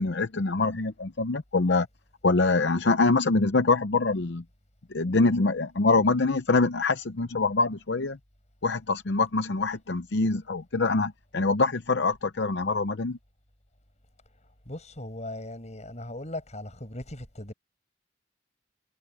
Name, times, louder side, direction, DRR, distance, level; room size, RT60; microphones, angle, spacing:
voice 1, 0.0-1.9 2.2-4.4 4.9-8.2 8.6-13.2, left 3 dB, 65° left, 0.8 m, -24 dB
voice 2, 14.7-17.5, left 1 dB, 40° left, 7.1 m, -38 dB
head